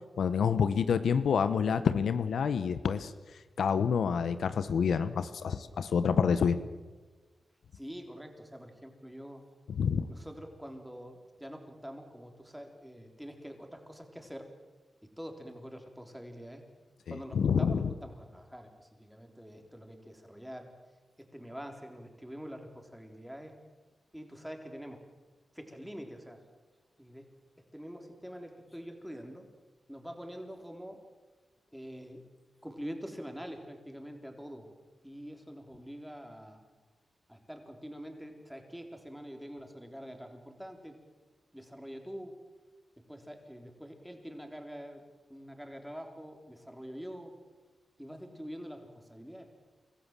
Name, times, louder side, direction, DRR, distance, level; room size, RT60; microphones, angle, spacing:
voice 1, 0.2-3.1 3.6-6.6 9.8-10.1 17.1-17.8, left 6 dB, 80° left, 12 dB, 0.8 m, -28 dB
voice 2, 7.7-9.5 10.1-14.5 15.0-16.6 17.1-20.7 21.2-23.6 24.1-25.0 25.5-26.4 27.0-27.3 27.7-29.5 29.9-31.0 31.7-32.3 32.6-34.7 35.0-36.6 37.3-41.0 41.5-42.4 43.1-47.3 48.0-49.5, equal, 5° right, 3 dB, 3.8 m, -45 dB
25.0 x 14.0 x 7.4 m, 1.3 s
cardioid pair, 55°, 0 cm